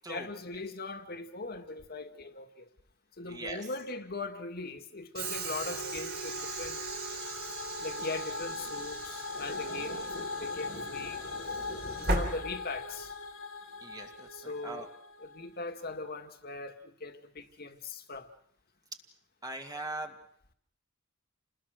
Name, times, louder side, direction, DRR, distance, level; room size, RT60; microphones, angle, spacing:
voice 1, 0.1-2.6 3.2-6.8 7.8-13.1 14.3-14.9 15.2-18.3, left 3 dB, 50° left, 2.1 m, -40 dB
voice 2, 3.2-3.7 10.7-10.8 13.8-14.9 19.4-20.1, right 2 dB, 20° right, 2.2 m, -41 dB
Train / Sliding door, 5.1-13.1, right 2 dB, 50° right, 3.9 m, -38 dB
sound 1, 5.2-15.4, left 3 dB, 90° left, 3.0 m, -40 dB
28.5 x 20.5 x 6.4 m
head